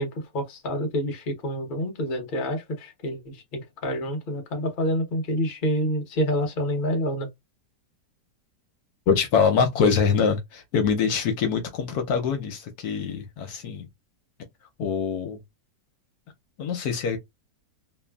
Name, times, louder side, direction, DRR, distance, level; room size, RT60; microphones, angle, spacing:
voice 1, 0.0-7.3, equal, 45° left, 0.7 m, -28 dB
voice 2, 9.1-13.9 14.8-15.4 16.6-17.2, left 6 dB, 70° left, 1.1 m, -24 dB
3.1 x 2.3 x 2.2 m
omnidirectional pair, 1.9 m